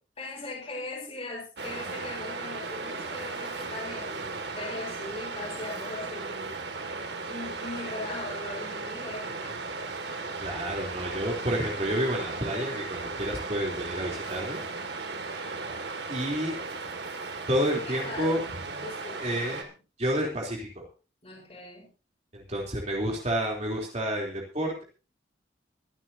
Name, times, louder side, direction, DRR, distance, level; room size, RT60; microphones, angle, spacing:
voice 1, 0.2-6.8 7.3-9.6 17.8-18.4 18.8-19.4 21.2-21.9, left 2 dB, 35° left, -2 dB, 4.8 m, -39 dB
Waves surf, 1.6-19.6, right 3 dB, 65° right, 2.3 m, -36 dB
voice 2, 10.4-14.6 16.1-16.6 17.5-18.4 19.2-19.6 20.0-20.8 22.3-24.8, equal, 40° right, -1 dB, 3.5 m, -30 dB
23.5 x 12.0 x 2.8 m, 0.33 s
head